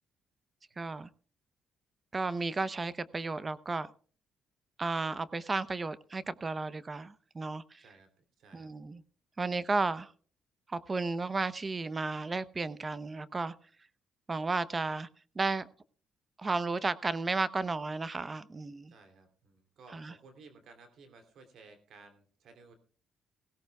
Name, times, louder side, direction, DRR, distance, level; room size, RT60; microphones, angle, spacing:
voice 1, 0.8-1.1 2.1-3.9 4.8-7.8 8.5-9.0 9.4-10.1 10.7-13.5 14.3-15.1 15.4-15.7 16.4-18.9 19.9-20.1, right 3 dB, 30° right, 0.7 m, -33 dB
voice 2, 7.8-8.1 8.4-8.7 18.9-22.7, right 4 dB, 70° right, 2.9 m, -56 dB
17.5 x 17.0 x 2.3 m
cardioid pair, 90°, 0 cm